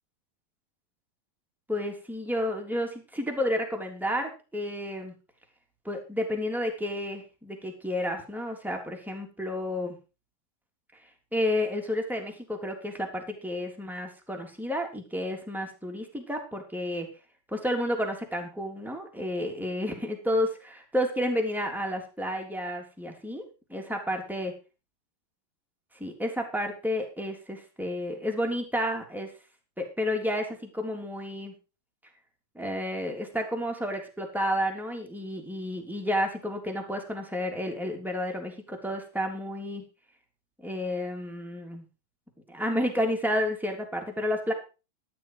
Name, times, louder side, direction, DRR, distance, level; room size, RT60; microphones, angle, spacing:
voice 1, 1.7-5.1 5.8-10.0 11.3-17.1 17.5-23.4 23.7-24.5 25.9-29.3 29.8-31.5 32.5-39.8 40.6-41.8 42.5-44.5, left 1 dB, ahead, 2 dB, 2.6 m, -31 dB
14.0 x 11.0 x 5.0 m, 0.33 s
omnidirectional pair, 4.4 m